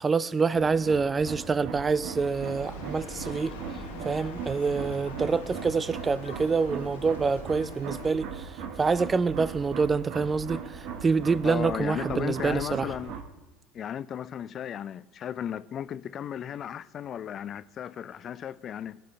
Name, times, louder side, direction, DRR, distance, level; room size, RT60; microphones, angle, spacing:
voice 1, 0.0-3.5 4.0-12.9, right 4 dB, 25° right, 0.4 m, -26 dB
sound 1, 0.5-13.2, right 6 dB, 60° right, 1.3 m, -39 dB
sound 2, 2.1-7.8, left 6 dB, 65° left, 1.4 m, -48 dB
sound 3, 2.4-8.1, left 5 dB, 85° left, 1.2 m, -48 dB
voice 2, 11.4-13.1 13.7-19.0, left 9 dB, 40° left, 0.4 m, -35 dB
18.5 x 9.3 x 3.3 m
hypercardioid pair, 75°, 0 cm